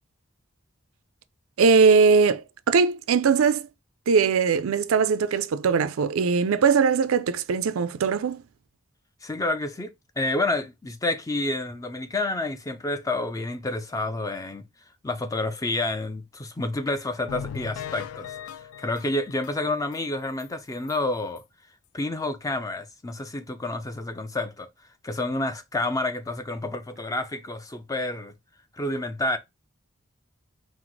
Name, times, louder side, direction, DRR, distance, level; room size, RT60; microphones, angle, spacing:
voice 1, 1.6-3.7 4.1-8.4, right 5 dB, 85° right, 0.4 m, -20 dB
voice 2, 9.2-14.6 15.0-18.3 18.8-21.4 21.9-24.7 25.0-28.3 28.7-29.4, left 2 dB, 15° left, 0.4 m, -29 dB
sound 1, 17.3-20.0 20.4-20.5 20.9-21.0 21.4-21.5, left 8 dB, 90° left, 0.3 m, -39 dB
4.5 x 2.0 x 3.9 m
head